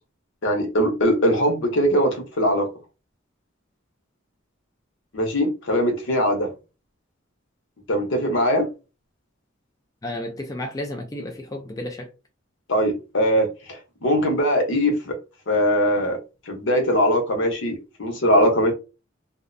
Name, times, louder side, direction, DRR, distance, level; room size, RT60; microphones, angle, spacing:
voice 1, 0.4-2.7 5.1-6.5 7.9-8.7 12.7-13.5 14.0-15.2 15.5-16.2 16.5-18.7, equal, 65° left, 0.8 m, -21 dB
voice 2, 10.0-12.1, left 1 dB, 20° left, 0.4 m, -32 dB
2.4 x 2.1 x 2.5 m
head